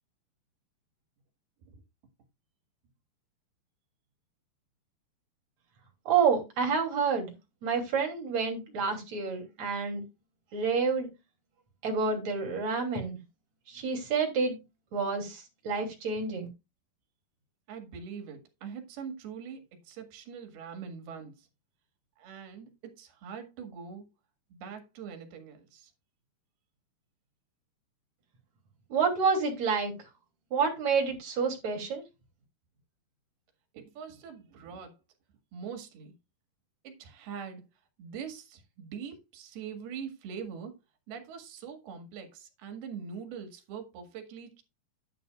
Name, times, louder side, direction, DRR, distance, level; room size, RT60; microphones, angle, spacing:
voice 1, 6.1-7.3 7.6-10.0 10.5-11.1 11.8-13.2 13.7-14.6 14.9-16.5 28.9-29.9 30.5-32.0, right 5 dB, 50° right, 4.0 m, -28 dB
voice 2, 17.7-21.5 22.2-24.1 24.5-25.9 33.7-35.0 35.5-36.1 36.8-37.6 38.0-40.8 41.1-44.6, right 6 dB, 85° right, 3.9 m, -43 dB
10.5 x 10.0 x 2.4 m
omnidirectional pair, 4.4 m